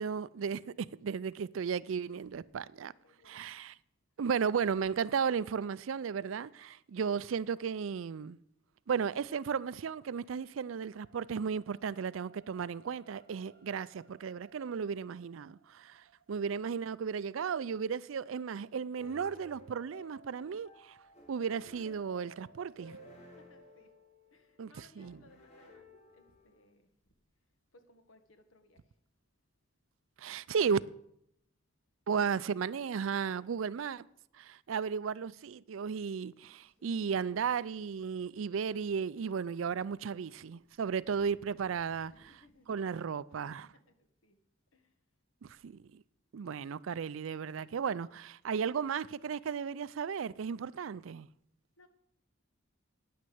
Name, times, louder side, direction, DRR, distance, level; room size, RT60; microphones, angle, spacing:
voice 1, 0.0-2.9 3.3-3.7 4.2-8.4 8.9-21.0 21.3-23.0 24.6-25.2 30.2-30.8 32.1-34.1 34.3-42.1 42.7-43.7 45.4-46.0 46.3-51.3, right 6 dB, 75° right, 0.4 m, -35 dB
voice 2, 2.9-3.5 4.7-4.9 22.4-23.9 24.3-26.9 27.7-29.0 42.1-42.7 43.7-44.4 44.7-45.0 45.5-45.6 51.8-51.9, left 2 dB, 80° left, 1.5 m, -64 dB
sound 1, 10.4-21.9 22.4-22.5, right 6 dB, 55° right, 1.4 m, -67 dB
sound 2, 19.0-26.6, equal, 35° left, 3.2 m, -56 dB
Crow, 36.6-43.0, left 1 dB, 10° left, 1.9 m, -69 dB
9.6 x 9.4 x 7.7 m
head